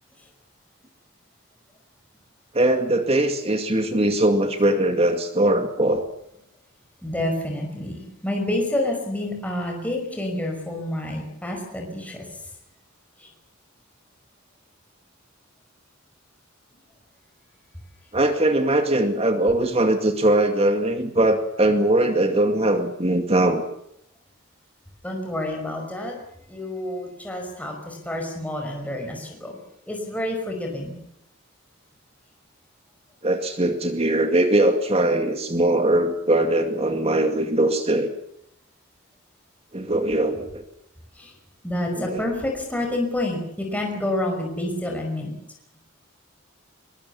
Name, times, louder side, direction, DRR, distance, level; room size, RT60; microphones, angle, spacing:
voice 1, 2.5-6.1 18.1-23.6 33.2-38.1 39.7-40.6 42.0-42.3, right 1 dB, 30° right, 6 dB, 2.3 m, -21 dB
voice 2, 7.0-12.4 13.2-13.3 25.0-26.1 26.5-29.6 29.9-31.0 41.1-41.3 41.6-45.3, left 1 dB, 5° left, 1 dB, 5.6 m, -28 dB
23.0 x 23.0 x 7.2 m, 0.77 s
head